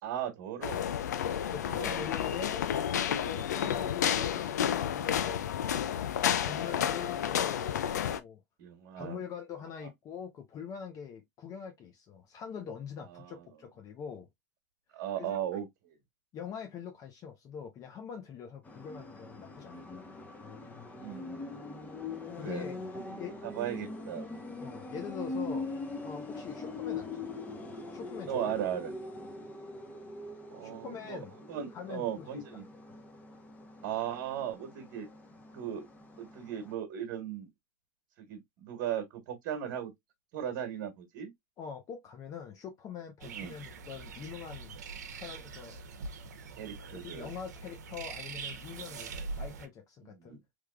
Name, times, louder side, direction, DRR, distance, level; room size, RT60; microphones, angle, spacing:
voice 1, 0.0-0.8 1.7-2.0 8.6-9.2 13.1-13.4 14.9-15.9 20.9-21.6 22.4-22.6 22.9-24.3 28.3-28.9 30.5-32.7 33.8-35.1 35.5-35.9 36.2-37.5 38.2-39.9 40.3-41.3 43.2-43.5 46.6-47.3 48.9-49.1 50.0-50.4, right 10 dB, 60° right, 1.2 m, -37 dB
sound 1, 0.6-8.2, left 9 dB, 85° left, 0.4 m, -31 dB
voice 2, 1.3-2.7 3.0-4.6 4.8-6.1 6.4-7.8 8.1-8.4 9.0-14.3 15.2-15.4 16.3-20.1 22.4-22.8 23.1-23.3 24.6-25.7 26.0-27.3 27.9-28.5 30.6-31.4 31.7-32.4 41.6-44.8 45.1-45.8 46.9-50.4, left 7 dB, 40° left, 0.7 m, -43 dB
sound 2, 18.6-36.7, left 3 dB, 15° left, 0.9 m, -42 dB
sound 3, 43.2-49.7, right 4 dB, 80° right, 0.7 m, -43 dB
3.4 x 3.1 x 2.3 m
hypercardioid pair, 100°, 9 cm